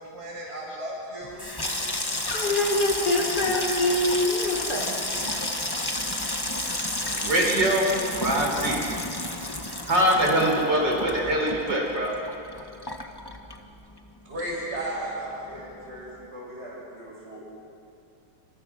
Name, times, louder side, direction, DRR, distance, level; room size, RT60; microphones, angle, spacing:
voice 1, 0.1-1.4 14.3-17.4, right 1 dB, 30° right, -4 dB, 7.1 m, -35 dB
Water tap faucet / Sink (filling or washing), 1.2-14.1 14.4-15.0 15.3-15.6, left 1 dB, 15° left, 1.3 m, -31 dB
voice 2, 2.3-5.0, left 2 dB, 50° left, -3 dB, 4.6 m, -25 dB
voice 3, 7.1-8.8 9.9-12.1, right 1 dB, 60° right, -1 dB, 5.8 m, -23 dB
28.0 x 27.0 x 6.3 m, 2.7 s
omnidirectional pair, 2.2 m